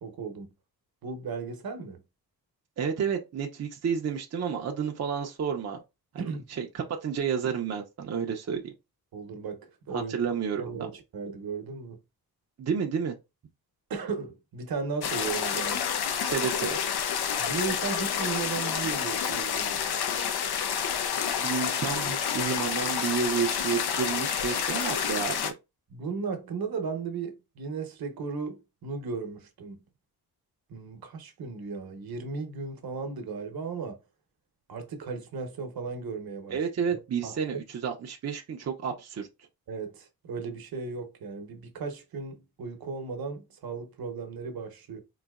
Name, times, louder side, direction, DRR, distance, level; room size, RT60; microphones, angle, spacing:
voice 1, 0.0-0.5 1.0-2.0 6.2-6.5 9.1-10.2 10.6-12.0 13.9-15.8 17.4-20.0 25.9-29.8 30.7-34.0 34.7-36.6 36.9-37.6 39.7-45.0, right 5 dB, 70° right, 0.9 m, -36 dB
voice 2, 2.8-5.8 6.1-8.6 9.9-10.6 12.6-13.1 16.2-16.8 21.4-25.5 36.5-39.3, right 6 dB, 45° right, 0.5 m, -30 dB
sound 1, 15.0-25.5, left 8 dB, 80° left, 0.6 m, -29 dB
4.0 x 2.7 x 2.3 m
wide cardioid pair, 145°, 38 cm